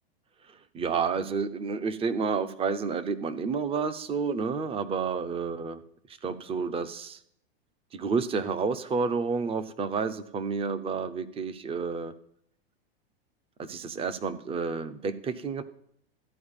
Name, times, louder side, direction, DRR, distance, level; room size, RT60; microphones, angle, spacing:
voice 1, 0.7-5.8 6.2-7.2 7.9-12.1 13.6-15.6, right 5 dB, 20° right, 13 dB, 0.7 m, -30 dB
13.0 x 4.7 x 8.8 m, 0.68 s
hypercardioid pair, 125°, 31 cm